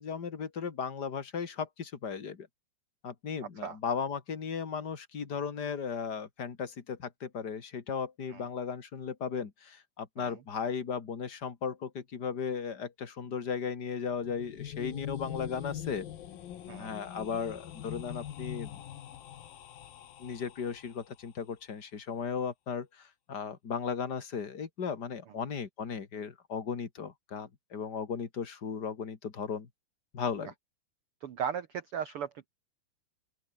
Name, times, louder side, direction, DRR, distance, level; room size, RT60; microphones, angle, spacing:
voice 1, 0.0-2.5 3.0-16.1 16.8-18.8 20.2-29.7 30.1-30.5, left 6 dB, 35° left, 2.1 m, -36 dB
sound 1, 14.2-21.1, left 11 dB, 75° left, 3.5 m, -43 dB
voice 2, 31.2-32.5, right 8 dB, 90° right, 1.2 m, -37 dB
open air
omnidirectional pair, 4.2 m